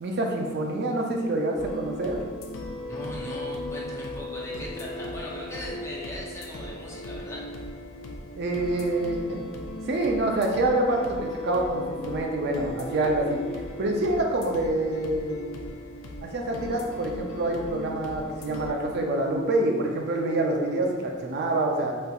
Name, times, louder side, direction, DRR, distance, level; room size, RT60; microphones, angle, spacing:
voice 1, 0.0-2.2 8.4-9.4 9.9-13.4 13.8-15.4 16.2-21.9, right 2 dB, 55° right, 1 dB, 0.4 m, -26 dB
sound 1, 1.6-18.7, left 1 dB, 90° left, 0.4 m, -37 dB
voice 2, 2.9-7.4, left 1 dB, 15° left, -4 dB, 0.6 m, -38 dB
4.2 x 2.5 x 2.3 m, 1.5 s
head